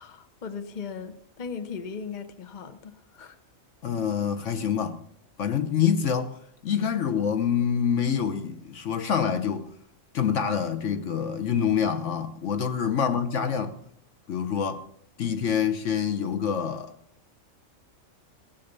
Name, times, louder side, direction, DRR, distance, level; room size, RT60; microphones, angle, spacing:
voice 1, 0.0-3.4 13.0-13.2, left 6 dB, 40° left, 1.0 m, -38 dB
voice 2, 3.8-5.0 5.4-9.7 10.1-13.7 14.3-14.8 15.2-16.9, left 7 dB, 70° left, 1.3 m, -26 dB
17.5 x 7.5 x 6.7 m
omnidirectional pair, 1.4 m